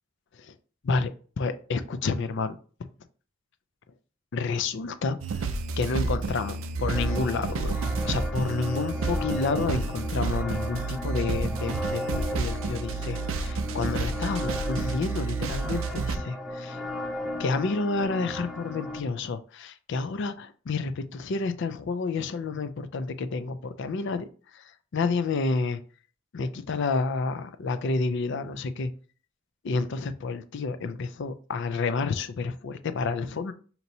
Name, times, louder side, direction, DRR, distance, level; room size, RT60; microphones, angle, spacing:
voice 1, 1.4-2.6 4.3-5.2 5.8-7.8 8.0-16.8 17.4-24.2 24.9-25.8 26.3-28.9 29.6-33.5, left 4 dB, 60° left, 11 dB, 0.4 m, -29 dB
sound 1, 5.2-16.2, right 4 dB, 75° right, 0.5 m, -30 dB
sound 2, 6.9-19.0, left 1 dB, ahead, 0.4 m, -36 dB
5.2 x 2.9 x 2.7 m, 0.40 s
head